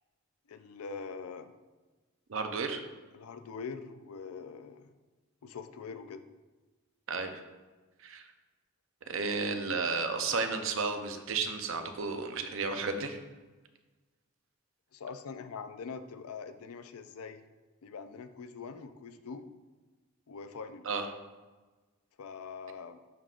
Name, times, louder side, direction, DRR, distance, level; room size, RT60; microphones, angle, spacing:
voice 1, 0.5-1.5 3.1-4.9 5.4-6.2 9.3-9.4 14.9-17.4 17.8-19.5 20.3-20.9 22.2-23.0, left 5 dB, 90° left, 10 dB, 0.4 m, -43 dB
voice 2, 2.3-2.8 7.1-7.4 8.0-8.2 9.1-13.2 20.8-21.1, right 4 dB, 65° right, 6 dB, 0.6 m, -33 dB
11.0 x 3.7 x 2.5 m, 1.3 s
head